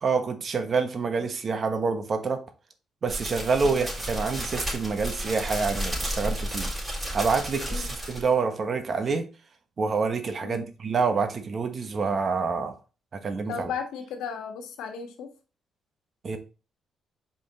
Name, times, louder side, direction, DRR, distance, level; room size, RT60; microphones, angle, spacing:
voice 1, 0.0-2.4 3.0-9.3 9.8-12.7 13.1-13.7 16.2-16.4, right 4 dB, 45° right, 1.2 m, -27 dB
sound 1, 3.1-8.3, equal, 15° right, 3.8 m, -32 dB
voice 2, 13.5-15.3, left 6 dB, 90° left, 1.4 m, -35 dB
5.2 x 5.1 x 3.7 m
cardioid pair, 90°, 0 cm